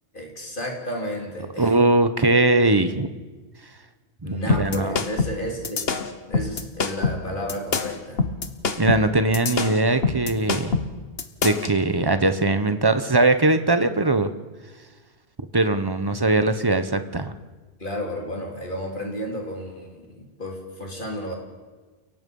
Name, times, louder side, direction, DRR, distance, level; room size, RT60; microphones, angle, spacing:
voice 1, 0.1-1.7 4.2-5.9 6.3-8.2 17.8-21.4, equal, 50° left, 0 dB, 4.0 m, -32 dB
voice 2, 1.6-3.1 4.2-5.0 8.8-10.8 11.4-14.3 15.5-17.3, right 2 dB, 25° right, 10 dB, 1.0 m, -20 dB
sound 1, 4.5-11.7, left 4 dB, 65° left, 1.4 m, -25 dB
29.5 x 17.5 x 5.5 m, 1.3 s
omnidirectional pair, 1.1 m